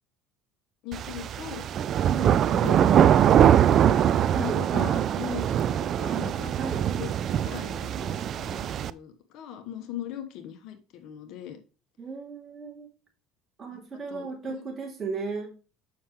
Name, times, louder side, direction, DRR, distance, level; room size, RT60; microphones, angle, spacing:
voice 1, 0.8-1.6 2.2-3.4 3.7-4.0 4.3-6.5 6.9-11.6 13.7-13.8 14.1-14.6, left 10 dB, 65° left, 8 dB, 1.2 m, -40 dB
sound 1, 0.9-8.9, right 9 dB, 45° right, 0.3 m, -22 dB
voice 2, 12.0-12.9 13.6-15.5, right 4 dB, 30° right, 0 dB, 2.7 m, -35 dB
7.2 x 5.8 x 3.1 m, 0.34 s
supercardioid pair, 110°, 0 cm